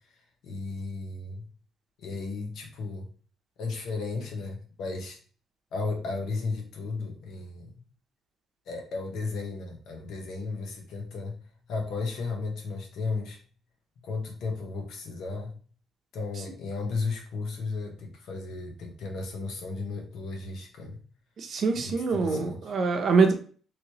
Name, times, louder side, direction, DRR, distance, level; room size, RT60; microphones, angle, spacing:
voice 1, 0.4-1.5 2.0-3.1 3.6-5.2 5.7-7.7 8.7-11.4 11.7-13.4 14.0-15.6 16.1-21.0 21.8-22.7, left 3 dB, 75° left, 2 dB, 1.0 m, -34 dB
voice 2, 21.4-23.3, right 4 dB, 60° right, 4 dB, 0.7 m, -24 dB
3.0 x 3.0 x 2.9 m, 0.41 s
cardioid pair, 90°, 0 cm